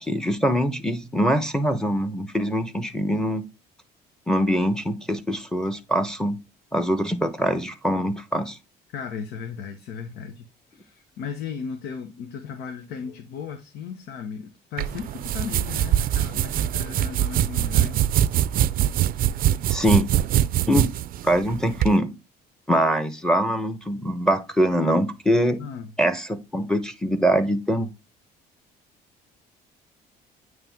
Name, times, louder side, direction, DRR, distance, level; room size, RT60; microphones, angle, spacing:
voice 1, 0.0-3.4 4.3-6.4 6.7-8.6 19.7-20.1 20.7-20.9 21.2-22.1 22.7-25.6 26.0-27.9, equal, 5° left, 0.9 m, -23 dB
voice 2, 8.9-18.1 25.6-25.9, left 6 dB, 85° left, 1.0 m, -36 dB
sound 1, 14.8-21.9, right 12 dB, 60° right, 0.4 m, -23 dB
9.0 x 3.2 x 3.5 m
cardioid pair, 110°, 17 cm